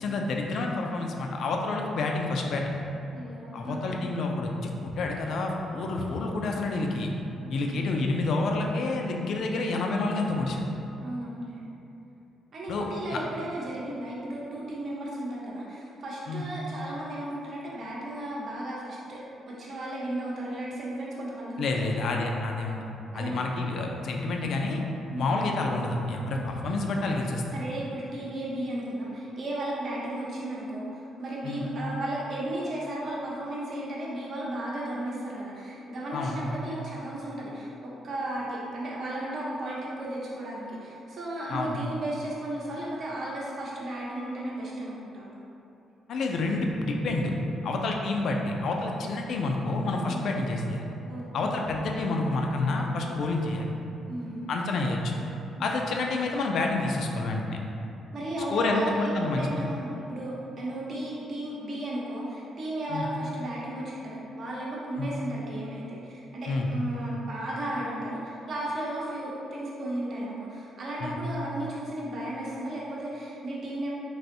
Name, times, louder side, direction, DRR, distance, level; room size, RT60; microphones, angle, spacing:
voice 1, 0.0-2.8 3.5-7.1 7.5-10.6 12.7-13.2 16.3-16.4 21.6-22.8 23.1-24.8 25.2-27.4 31.4-31.6 36.1-36.4 41.5-41.8 46.1-47.3 47.6-50.9 51.3-53.7 54.5-55.2 55.6-57.6 58.5-59.4 62.9-63.1 65.0-65.1 66.5-66.7 71.0-71.2, left 2 dB, 70° left, 1 dB, 0.3 m, -28 dB
voice 2, 3.1-3.9 7.4-8.0 11.0-11.6 12.5-19.2 19.5-21.8 23.1-23.4 25.1-25.3 26.3-26.4 27.5-45.4 50.1-50.2 51.1-51.7 54.1-54.4 55.6-56.0 58.1-73.9, right 1 dB, 55° right, -5 dB, 0.7 m, -35 dB
3.3 x 2.6 x 2.6 m, 2.8 s
cardioid pair, 90°, 0 cm